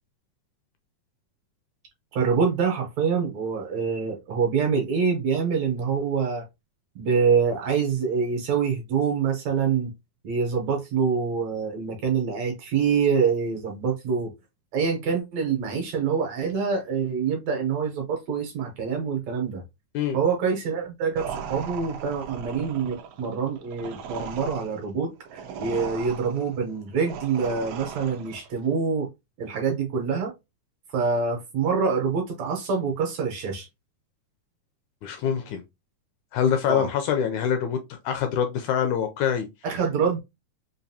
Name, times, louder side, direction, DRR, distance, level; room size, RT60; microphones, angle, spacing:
voice 1, 2.1-6.4 7.0-9.9 10.2-14.3 14.7-19.6 20.1-29.1 29.4-30.3 30.9-33.7 36.7-36.9 39.6-40.2, right 6 dB, 70° right, 1.9 m, -25 dB
sound 1, 21.2-28.5, right 7 dB, 90° right, 1.4 m, -38 dB
voice 2, 35.0-35.6 36.3-39.5, left 8 dB, 80° left, 1.8 m, -25 dB
5.2 x 2.5 x 2.7 m
omnidirectional pair, 3.7 m